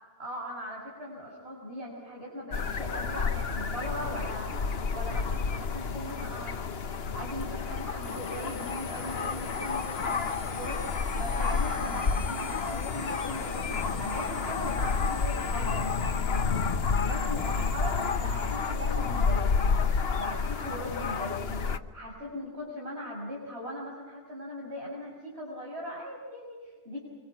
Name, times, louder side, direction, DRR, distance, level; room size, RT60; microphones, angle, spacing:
voice 1, 0.2-6.6 7.1-16.3 17.0-19.8 20.2-27.1, equal, 85° right, -3 dB, 6.3 m, -39 dB
sound 1, 2.5-21.8, left 5 dB, 75° left, 1.3 m, -30 dB
sound 2, 8.0-20.0, left 3 dB, 35° left, 1.0 m, -43 dB
28.0 x 25.5 x 6.0 m, 1.3 s
omnidirectional pair, 1.0 m